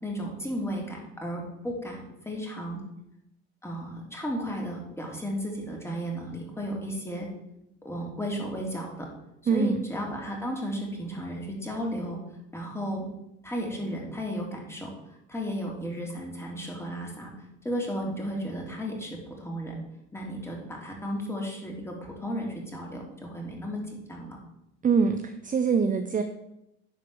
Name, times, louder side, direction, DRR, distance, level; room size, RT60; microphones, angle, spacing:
voice 1, 0.0-2.8 3.6-7.3 7.8-9.1 9.5-12.2 12.5-13.1 13.4-14.9 15.3-17.3 17.6-19.7 20.1-24.4, equal, 5° left, -1 dB, 3.4 m, -34 dB
voice 2, 9.5-9.8 24.8-26.2, right 5 dB, 20° right, 8 dB, 0.7 m, -24 dB
10.5 x 5.2 x 7.0 m, 0.86 s
hypercardioid pair, 85°, 36 cm